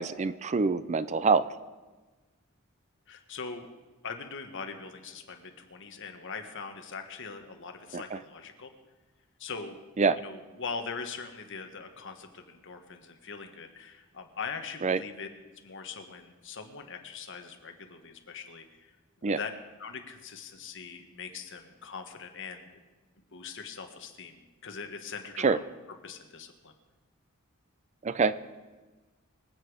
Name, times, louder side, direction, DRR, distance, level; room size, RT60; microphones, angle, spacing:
voice 1, 0.0-1.4 7.9-8.2 10.0-10.2 14.8-15.0 19.2-19.4 25.4-25.6 28.0-28.3, right 4 dB, 35° right, 15 dB, 0.4 m, -25 dB
voice 2, 3.1-3.7 4.0-8.7 9.4-9.8 10.2-15.3 15.6-18.9 19.3-19.5 19.8-22.7 23.3-25.6 26.0-26.7, left 5 dB, 60° left, 5 dB, 1.6 m, -41 dB
24.5 x 8.4 x 5.0 m, 1.3 s
head